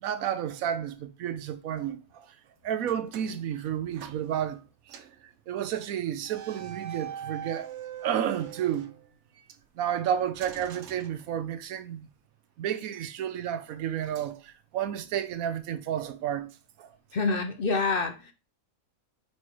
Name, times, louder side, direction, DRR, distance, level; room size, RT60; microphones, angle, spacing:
voice 1, 0.0-2.4 2.6-4.6 4.9-5.0 5.5-7.7 8.0-8.9 9.8-12.1 12.6-16.5 16.8-16.9, right 10 dB, 85° right, 1.1 m, -31 dB
sound 1, 2.8-4.6 4.9-5.2 6.2-9.5 10.3-11.8, right 9 dB, 60° right, 0.9 m, -43 dB
voice 2, 17.1-18.3, left 4 dB, 50° left, 0.8 m, -27 dB
5.1 x 4.3 x 4.8 m
omnidirectional pair, 1.5 m